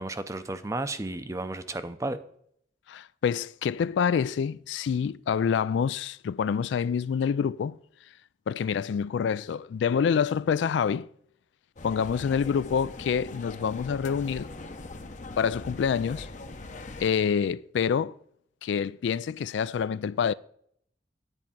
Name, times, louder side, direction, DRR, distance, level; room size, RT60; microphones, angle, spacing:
voice 1, 0.0-2.2, right 2 dB, 15° right, 0.5 m, -33 dB
voice 2, 2.9-7.8 8.5-11.1 11.8-14.5 15.4-16.3 17.0-18.1 18.6-20.3, left 7 dB, 70° left, 0.3 m, -27 dB
sound 1, 11.8-17.1, left 2 dB, 40° left, 0.7 m, -41 dB
9.8 x 4.5 x 7.1 m
head